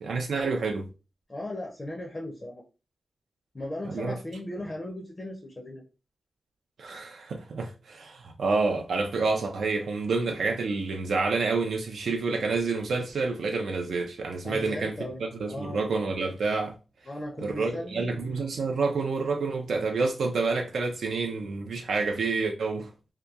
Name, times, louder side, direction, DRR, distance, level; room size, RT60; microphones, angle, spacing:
voice 1, 0.0-0.9 3.9-4.2 6.8-16.8 17.4-22.9, right 4 dB, 80° right, 0.4 m, -28 dB
voice 2, 1.3-2.6 3.5-5.8 14.4-15.2 15.5-15.8 17.1-18.2, left 1 dB, 25° left, 0.4 m, -37 dB
2.7 x 2.2 x 2.3 m
wide cardioid pair, 175°, 0 cm